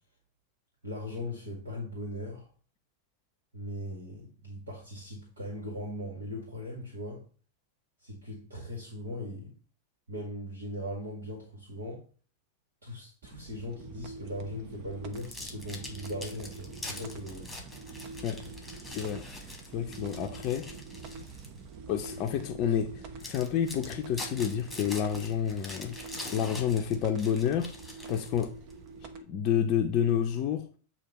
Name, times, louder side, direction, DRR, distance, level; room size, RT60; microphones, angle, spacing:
voice 1, 0.8-2.5 3.5-7.2 8.0-9.5 10.1-12.0 12.8-17.5, left 1 dB, 70° right, 1.9 m, -39 dB
sound 1, 13.2-29.2, right 4 dB, 45° right, 0.7 m, -45 dB
sound 2, 15.1-21.6 22.1-22.3 22.8-22.9 23.2-28.7, left 2 dB, 5° left, 1.4 m, -44 dB
voice 2, 18.9-20.7 21.9-27.7 28.1-28.6 29.3-30.7, left 9 dB, 40° left, 0.6 m, -29 dB
8.2 x 2.8 x 4.1 m
figure-of-eight pair, 90°, 0 cm